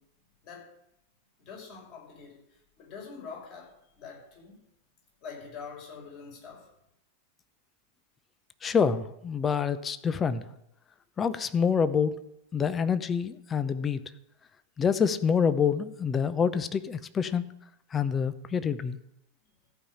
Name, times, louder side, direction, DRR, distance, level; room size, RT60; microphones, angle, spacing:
voice 1, 1.4-2.4 2.8-4.6 5.2-6.7, left 5 dB, 45° left, -2 dB, 6.0 m, -44 dB
voice 2, 8.6-10.4 11.2-12.1 12.5-14.0 14.8-17.4 17.9-19.0, left 6 dB, 20° left, 13 dB, 0.8 m, -26 dB
14.5 x 5.7 x 8.6 m, 0.80 s
figure-of-eight pair, 90°, 0 cm